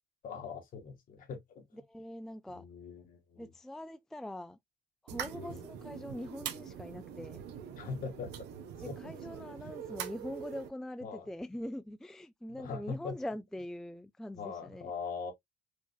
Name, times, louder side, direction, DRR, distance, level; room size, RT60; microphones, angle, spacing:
voice 1, 0.2-1.8 2.5-3.5 5.3-5.8 7.7-8.5 8.8-8.9 9.6-9.7 11.0-11.2 12.5-13.1 14.4-15.3, left 5 dB, 55° left, 1.6 m, -42 dB
voice 2, 1.9-2.6 3.4-4.6 5.0-7.4 8.8-14.9, left 1 dB, 5° left, 0.3 m, -43 dB
sound 1, 5.1-10.7, right 9 dB, 85° right, 0.9 m, -43 dB
5.0 x 2.5 x 2.2 m
cardioid pair, 110°, 17 cm